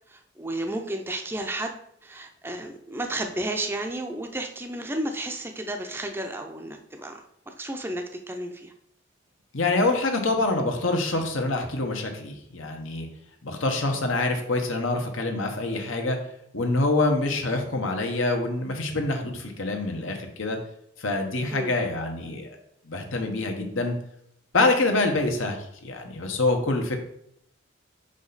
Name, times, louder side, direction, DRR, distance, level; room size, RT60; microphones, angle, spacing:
voice 1, 0.1-8.7 21.5-21.7, right 1 dB, 10° right, 4 dB, 0.5 m, -32 dB
voice 2, 9.5-13.1 13.4-16.2 16.5-20.6 21.0-22.6 22.9-24.0 24.5-27.0, left 2 dB, 75° left, 4 dB, 1.1 m, -26 dB
5.6 x 5.0 x 4.0 m, 0.72 s
head